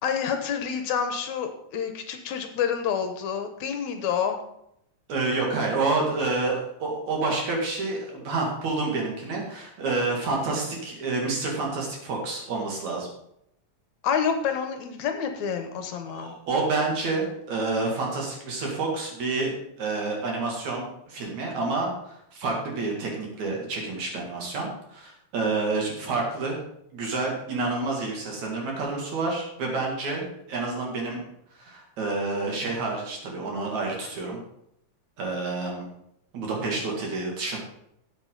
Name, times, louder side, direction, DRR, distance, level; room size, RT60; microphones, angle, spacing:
voice 1, 0.0-4.4 14.0-16.3, left 7 dB, 75° left, 6 dB, 2.1 m, -28 dB
voice 2, 5.1-13.1 16.1-26.6 26.9-31.3 31.6-34.4 35.2-35.9 36.3-37.6, right 3 dB, 65° right, -1 dB, 3.7 m, -29 dB
12.5 x 8.2 x 3.9 m, 0.77 s
omnidirectional pair, 3.6 m